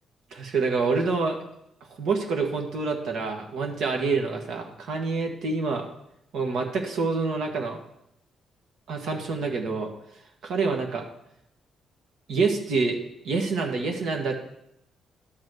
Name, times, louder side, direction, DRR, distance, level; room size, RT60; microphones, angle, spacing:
voice 1, 0.3-1.4 1.9-5.9 6.3-7.8 8.9-9.9 10.4-11.0 12.3-13.0 13.2-14.4, right 4 dB, 70° right, 3 dB, 1.5 m, -27 dB
11.5 x 4.1 x 6.7 m, 0.80 s
cardioid pair, 90°, 0 cm